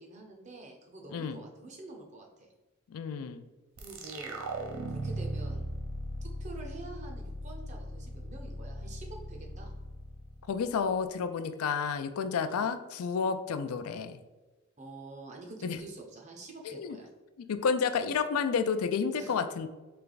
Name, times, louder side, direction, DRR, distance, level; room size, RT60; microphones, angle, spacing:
voice 1, 0.0-2.5 3.8-4.5 4.9-5.7 6.2-9.7 12.5-12.7 14.8-17.1 18.0-18.1 19.2-19.4, right 2 dB, 30° right, 1 dB, 0.6 m, -47 dB
voice 2, 2.9-3.4 10.5-14.2 15.6-15.8 16.6-17.0 17.5-19.7, left 6 dB, 80° left, 10 dB, 0.4 m, -30 dB
sound 1, 3.8-11.1, right 1 dB, 75° right, 0.6 m, -39 dB
3.3 x 3.3 x 3.9 m, 1.2 s
head